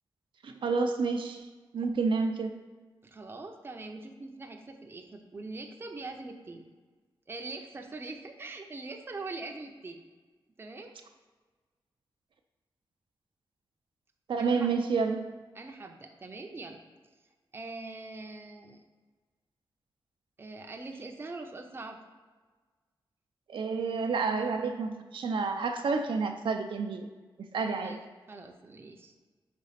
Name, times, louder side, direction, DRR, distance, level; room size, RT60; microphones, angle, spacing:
voice 1, 0.4-1.4 1.7-2.6 14.3-15.3 23.5-27.1 27.5-28.0, right 4 dB, 75° right, 5 dB, 0.5 m, -29 dB
voice 2, 3.0-6.6 7.3-10.0 10.6-10.9 14.4-14.7 15.5-16.8 17.5-18.8 20.4-22.0 27.8-28.0 28.3-29.1, right 3 dB, 25° right, 4 dB, 0.5 m, -42 dB
5.2 x 4.0 x 5.7 m, 1.4 s
wide cardioid pair, 125°, 9 cm